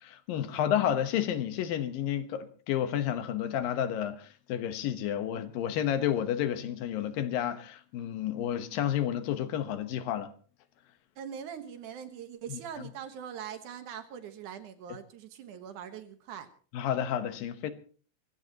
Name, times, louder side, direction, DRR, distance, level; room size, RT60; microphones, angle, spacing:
voice 1, 0.0-10.3 16.7-17.7, left 10 dB, 80° left, 2.9 m, -31 dB
voice 2, 11.2-16.5, right 8 dB, 65° right, 2.5 m, -42 dB
24.0 x 16.0 x 2.9 m
omnidirectional pair, 4.0 m